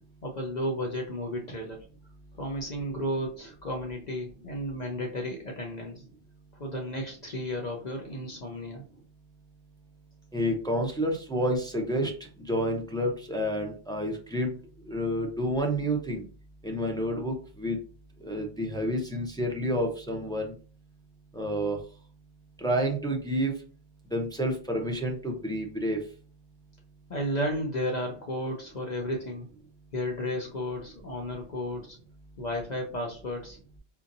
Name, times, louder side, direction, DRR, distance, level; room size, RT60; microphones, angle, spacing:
voice 1, 0.2-1.9 2.4-6.0 6.5-8.8 27.1-29.5 29.9-32.0 32.4-33.6, equal, 45° left, 1 dB, 0.7 m, -33 dB
voice 2, 10.3-12.1 12.4-14.5 14.9-16.2 16.6-17.8 18.2-20.5 21.3-21.8 22.6-23.5 24.1-26.0, equal, 5° left, 1 dB, 0.4 m, -29 dB
4.3 x 2.7 x 2.6 m, 0.39 s
omnidirectional pair, 1.1 m